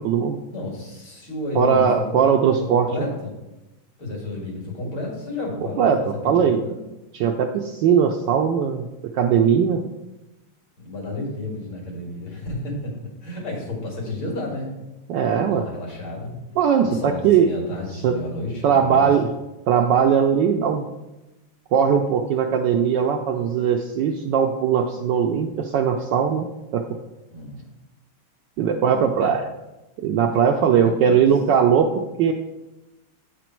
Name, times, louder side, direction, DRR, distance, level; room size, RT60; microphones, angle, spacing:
voice 1, 0.0-0.4 1.5-3.1 5.8-6.6 7.1-8.8 9.1-9.8 15.1-15.7 16.6-17.5 17.9-18.2 18.6-19.3 19.7-21.0 21.7-26.8 28.6-29.5 30.0-32.3, right 7 dB, 75° right, 3 dB, 1.0 m, -20 dB
voice 2, 0.5-2.3 2.7-3.3 4.0-6.8 10.8-12.9 13.2-14.7 15.5-16.4 16.8-19.1 27.3-27.7 29.2-29.3 30.8-31.3, left 2 dB, 70° left, -2 dB, 2.9 m, -31 dB
8.5 x 5.1 x 4.4 m, 1.0 s
omnidirectional pair, 2.4 m